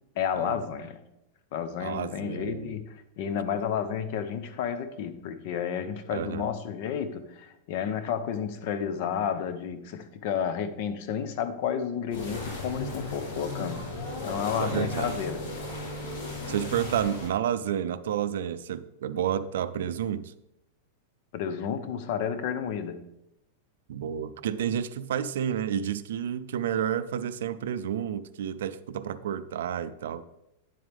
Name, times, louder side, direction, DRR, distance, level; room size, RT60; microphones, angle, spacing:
voice 1, 0.2-1.0 1.5-13.8 14.2-15.4 21.3-23.0, left 8 dB, 45° left, 12 dB, 0.8 m, -31 dB
voice 2, 1.8-2.8 6.1-6.4 14.6-15.2 16.5-20.3 23.9-30.2, right 9 dB, 75° right, 13 dB, 0.5 m, -30 dB
sound 1, 12.1-17.3, left 2 dB, 75° left, 3.7 m, -36 dB
10.0 x 7.4 x 3.5 m, 0.88 s
supercardioid pair, 175°, 0 cm